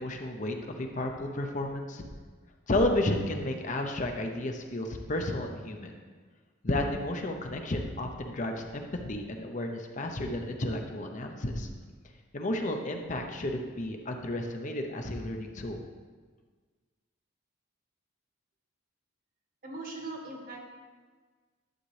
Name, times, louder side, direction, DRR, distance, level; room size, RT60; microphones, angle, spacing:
voice 1, 0.0-2.1 2.7-5.9 6.6-11.7 12.3-15.8, left 1 dB, 35° left, 3 dB, 0.6 m, -32 dB
voice 2, 19.6-20.7, right 2 dB, 45° right, 0 dB, 1.5 m, -40 dB
11.5 x 7.3 x 3.3 m, 1.5 s
head